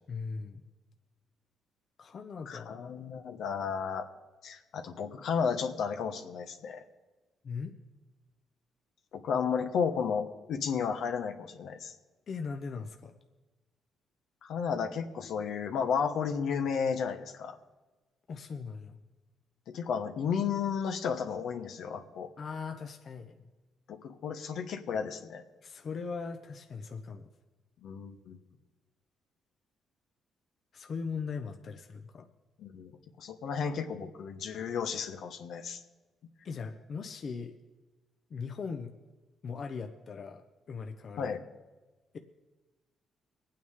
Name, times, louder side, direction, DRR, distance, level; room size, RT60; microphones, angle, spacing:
voice 1, 0.1-0.6 2.0-2.8 7.4-7.7 12.3-13.2 18.3-19.0 22.4-23.4 25.6-27.3 30.7-32.3 36.4-37.5 38.3-38.9 39.4-41.4, left 5 dB, 50° left, 5 dB, 1.0 m, -39 dB
voice 2, 2.5-4.1 4.4-6.8 9.1-11.9 14.4-17.6 19.7-22.3 23.9-25.4 27.8-28.4 32.6-32.9 33.2-35.8 41.2-41.4, left 6 dB, 75° left, 6 dB, 1.2 m, -33 dB
23.5 x 9.2 x 3.7 m, 1.2 s
cardioid pair, 90°, 0 cm